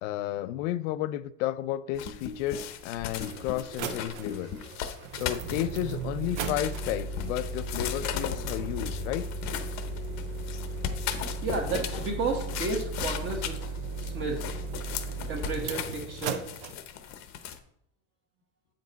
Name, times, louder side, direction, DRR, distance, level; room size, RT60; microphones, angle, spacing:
voice 1, 0.0-4.5 5.1-9.3, left 13 dB, 80° left, 0.5 m, -32 dB
sound 1, 1.9-17.6, left 9 dB, 50° left, 0.8 m, -37 dB
sound 2, 2.5-2.6 3.1-16.7, right 3 dB, 70° right, 1.0 m, -36 dB
voice 2, 11.4-13.6 14.0-14.5 15.3-16.4, right 3 dB, 35° right, 1.2 m, -32 dB
8.4 x 5.2 x 4.0 m
supercardioid pair, 135°, 36 cm